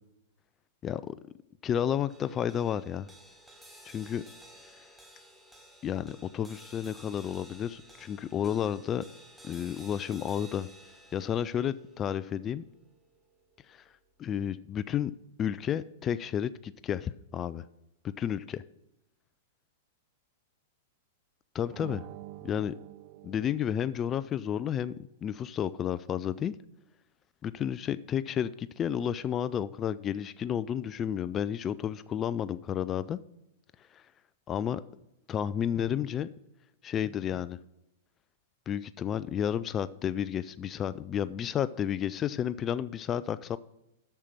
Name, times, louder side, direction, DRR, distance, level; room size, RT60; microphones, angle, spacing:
voice 1, 0.8-1.1 1.6-3.1 3.8-4.2 5.8-9.1 9.4-10.7 11.1-12.6 13.7-13.8 14.2-15.1 15.4-17.6 18.0-18.6 21.5-22.1 22.4-22.7 23.2-25.0 25.2-26.5 27.4-33.2 33.9-34.0 34.5-34.8 35.3-36.3 36.8-37.6 38.7-43.6, left 9 dB, 30° left, 16 dB, 0.4 m, -31 dB
sound 1, 2.1-14.6, right 1 dB, 5° right, 1.6 m, -54 dB
sound 2, 21.7-24.4, right 15 dB, 45° right, 0.4 m, -47 dB
8.9 x 6.5 x 6.0 m, 0.86 s
hypercardioid pair, 115°, 0 cm